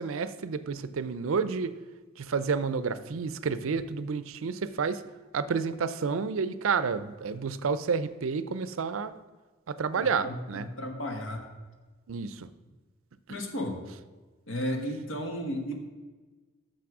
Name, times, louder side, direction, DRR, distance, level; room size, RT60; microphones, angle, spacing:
voice 1, 0.0-1.7 2.2-5.0 5.3-9.1 9.7-10.7 12.1-12.5, right 5 dB, 80° right, 14 dB, 0.5 m, -30 dB
voice 2, 10.0-11.4 13.3-13.8 14.5-15.7, equal, 75° left, 4 dB, 1.3 m, -34 dB
6.5 x 6.1 x 6.0 m, 1.3 s
head